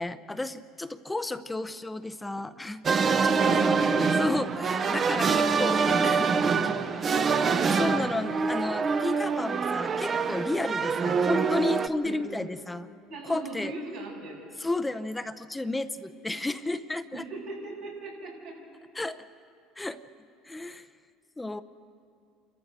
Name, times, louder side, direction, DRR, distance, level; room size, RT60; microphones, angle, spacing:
voice 1, 0.0-2.8 3.2-3.7 4.2-5.8 6.0-6.3 7.7-12.9 13.2-13.7 14.6-17.2 19.0-19.2 19.8-20.0 20.4-20.9 21.4-21.6, left 2 dB, 10° left, 10 dB, 0.7 m, -32 dB
sound 1, 2.8-11.9, right 5 dB, 35° right, 0.9 m, -25 dB
voice 2, 3.1-4.1 4.4-4.5 4.9-7.0 10.8-11.2 12.0-12.4 13.1-14.5 17.1-18.6, right 2 dB, 85° right, -3 dB, 6.7 m, -39 dB
29.0 x 14.0 x 6.7 m, 2.5 s
supercardioid pair, 95°, 0 cm